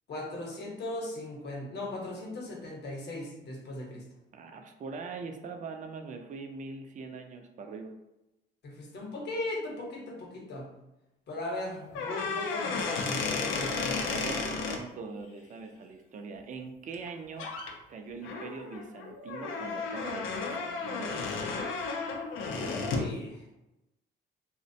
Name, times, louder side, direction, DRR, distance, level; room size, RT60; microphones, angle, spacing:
voice 1, 0.1-4.1 8.6-10.7 11.3-14.1 22.5-23.5, left 2 dB, 60° left, -1 dB, 0.8 m, -38 dB
voice 2, 4.3-7.9 14.1-17.5 17.9-21.4, right 4 dB, 40° right, 5 dB, 0.4 m, -42 dB
sound 1, 11.9-14.8 16.9-17.1 17.4-17.7 18.2-23.1, left 4 dB, 90° left, 0.4 m, -33 dB
2.4 x 2.1 x 2.6 m, 0.93 s
cardioid pair, 90°, 20 cm